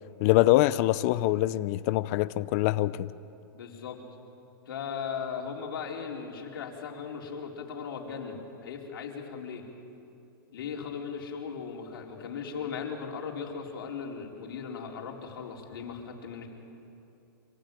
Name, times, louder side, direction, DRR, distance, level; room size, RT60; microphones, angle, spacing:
voice 1, 0.2-3.1, left 17 dB, 40° left, 16 dB, 0.6 m, -24 dB
voice 2, 3.5-4.0 4.7-9.6 10.5-16.5, left 6 dB, 70° left, 0 dB, 4.2 m, -38 dB
26.0 x 16.0 x 9.3 m, 2.8 s
hypercardioid pair, 145°, 12 cm